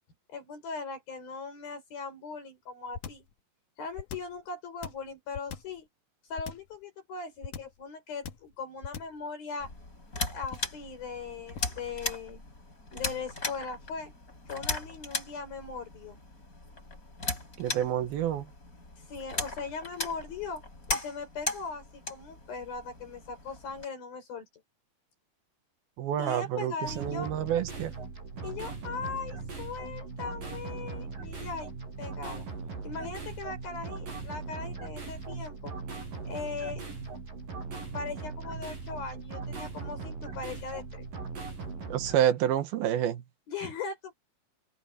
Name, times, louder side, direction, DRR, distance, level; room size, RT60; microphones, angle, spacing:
voice 1, 0.3-3.3 3.8-5.9 6.3-9.7 10.3-12.4 12.9-14.1 14.5-16.2 19.1-20.6 20.9-24.5 26.2-27.3 28.4-32.5 32.8-35.7 36.3-36.8 37.9-41.0 43.5-44.1, left 5 dB, 75° left, 7.7 m, -39 dB
sound 1, 2.9-3.3 3.9-4.4 4.8-5.8 6.4-6.8 7.4-7.8 8.2-8.5 8.8-9.2 10.4-10.8 11.5-11.8, left 7 dB, 60° left, 3.0 m, -40 dB
sound 2, 9.6-23.9, left 2 dB, 20° left, 6.1 m, -38 dB
voice 2, 17.6-18.5 26.0-27.9 41.9-43.2, right 11 dB, 85° right, 3.3 m, -28 dB
sound 3, 26.9-42.2, right 4 dB, 65° right, 8.4 m, -39 dB
omnidirectional pair, 4.2 m